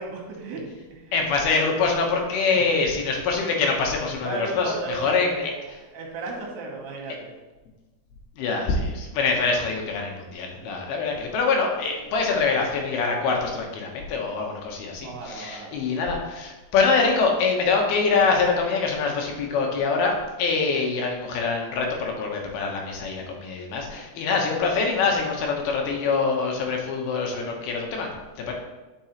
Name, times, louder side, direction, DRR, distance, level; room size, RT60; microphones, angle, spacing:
voice 1, 0.0-1.2 2.4-2.7 4.2-7.3 10.6-10.9 15.0-15.7 20.7-20.9, right 3 dB, 80° right, -2 dB, 3.6 m, -35 dB
voice 2, 1.1-5.4 8.4-20.1 20.4-28.1 28.5-28.6, left 4 dB, 75° left, 1 dB, 2.8 m, -24 dB
10.5 x 6.0 x 3.0 m, 1.2 s
omnidirectional pair, 4.7 m